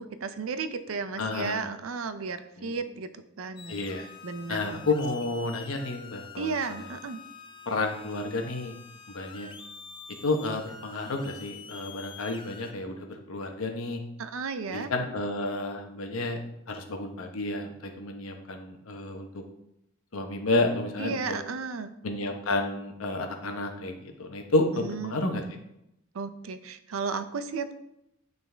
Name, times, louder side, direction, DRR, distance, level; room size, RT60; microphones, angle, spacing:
voice 1, 0.0-3.8 4.2-4.9 6.4-7.2 14.2-14.9 21.0-21.9 24.7-25.2 26.1-27.7, right 5 dB, 85° right, 11 dB, 0.5 m, -34 dB
voice 2, 1.2-1.6 2.6-2.7 3.7-4.1 4.5-6.9 7.7-8.8 9.1-9.5 10.2-14.0 14.7-16.4 16.7-19.4 20.1-21.2 22.0-25.4, left 2 dB, 85° left, 4 dB, 1.0 m, -31 dB
sound 1, 3.6-12.7, left 5 dB, 25° left, 0.5 m, -47 dB
9.2 x 4.0 x 3.4 m, 0.83 s
head